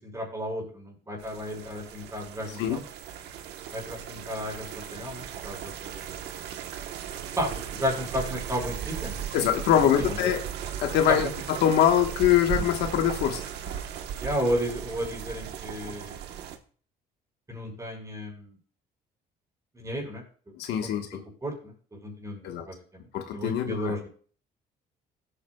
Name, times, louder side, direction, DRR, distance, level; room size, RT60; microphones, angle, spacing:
voice 1, 0.0-2.8 3.7-6.3 7.4-9.2 9.7-10.3 14.2-16.2 17.5-18.5 19.7-20.2 20.8-20.9 21.4-21.5 22.0-23.0 23.3-24.1, equal, 20° right, 0 dB, 5.3 m, -33 dB
sound 1, 1.2-16.6, right 9 dB, 80° right, 1.2 m, -37 dB
voice 2, 9.3-10.4 10.8-13.7 20.5-21.2 22.4-22.7 23.1-23.9, left 10 dB, 80° left, 5 dB, 1.4 m, -24 dB
17.5 x 8.6 x 2.3 m, 0.43 s
cardioid pair, 110°, 17 cm